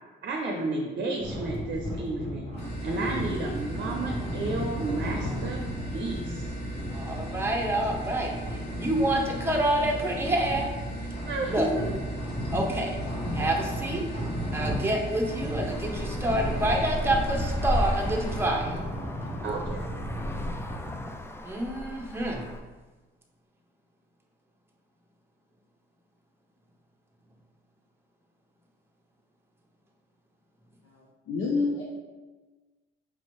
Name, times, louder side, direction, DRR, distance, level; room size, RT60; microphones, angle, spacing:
voice 1, 0.2-2.5 2.8-5.6 5.9-6.5 11.3-11.9 19.4-20.0, right 2 dB, 55° right, 1 dB, 0.6 m, -32 dB
sound 1, 1.2-21.1, equal, 30° left, 1.1 m, -35 dB
sound 2, 2.6-18.4, right 1 dB, 55° left, 1.3 m, -38 dB
voice 2, 6.9-10.7 11.5-11.7 12.5-13.0 13.3-14.0 14.5-18.8 21.4-22.4, right 1 dB, 10° right, 0 dB, 0.8 m, -28 dB
Traffic noise roadway noise, 15.7-22.6, left 1 dB, 10° left, 0.3 m, -34 dB
voice 3, 30.9-31.8, left 3 dB, 75° left, -4 dB, 0.7 m, -29 dB
5.2 x 2.7 x 3.1 m, 1.3 s
cardioid pair, 90°, 20 cm